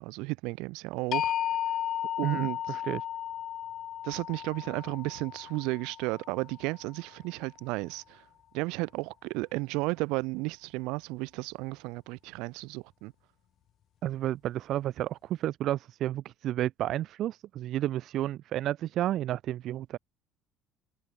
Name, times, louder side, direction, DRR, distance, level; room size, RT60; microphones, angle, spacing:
voice 1, 0.0-1.3 2.2-2.8 4.0-8.2 8.5-13.1, right 25 dB, 85° right, 1.6 m, -33 dB
sound 1, 1.1-7.1, left 11 dB, 45° left, 0.4 m, -34 dB
voice 2, 2.2-3.0 14.0-20.0, right 13 dB, 55° right, 1.7 m, -31 dB
cardioid pair, 140°, 0 cm